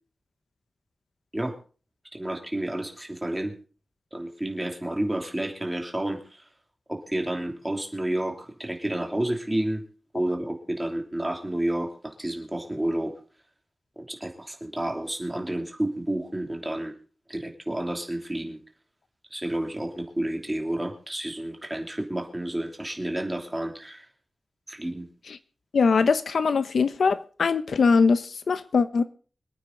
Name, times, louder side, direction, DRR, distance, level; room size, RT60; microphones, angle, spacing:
voice 1, 2.1-3.5 4.1-6.5 6.9-9.8 10.1-13.1 14.0-16.9 17.3-18.6 19.3-24.1 24.7-25.1, right 1 dB, 10° right, 3.0 m, -30 dB
voice 2, 25.7-29.0, left 5 dB, 80° left, 0.9 m, -22 dB
26.0 x 9.2 x 4.0 m
wide cardioid pair, 145°, 0 cm